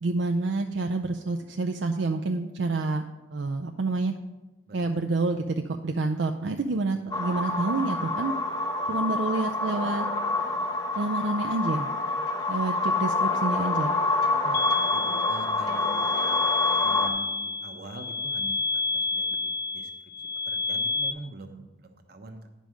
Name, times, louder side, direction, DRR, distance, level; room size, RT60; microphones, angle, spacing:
voice 1, 0.0-3.0 3.3-4.2 4.7-8.3 8.9-10.1 11.0-11.9 12.5-13.9, right 3 dB, 75° right, 5 dB, 0.5 m, -28 dB
sound 1, 7.1-17.1, left 3 dB, 20° left, 0.9 m, -27 dB
sound 2, 14.5-21.1, left 3 dB, 55° left, 0.5 m, -29 dB
voice 2, 14.9-16.1 16.8-19.9 20.4-22.5, right 2 dB, 55° right, 5 dB, 1.0 m, -44 dB
10.0 x 5.3 x 6.3 m, 1.1 s
head